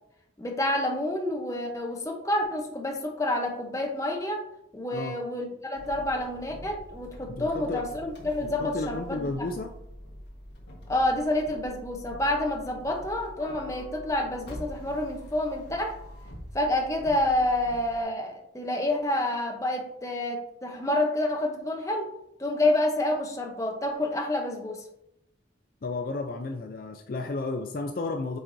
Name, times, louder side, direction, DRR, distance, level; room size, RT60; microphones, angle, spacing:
voice 1, 0.4-4.5 4.7-9.5 10.9-16.0 16.5-22.1 22.4-24.9, left 1 dB, 15° left, 2 dB, 0.8 m, -28 dB
sound 1, 5.7-18.0, equal, 65° left, 1.4 m, -45 dB
voice 2, 7.3-7.8 8.4-9.7 25.8-28.4, left 3 dB, 50° left, 5 dB, 0.4 m, -32 dB
sound 2, 13.4-15.7, left 1 dB, 25° right, 1.8 m, -52 dB
8.0 x 4.5 x 2.6 m, 0.79 s
head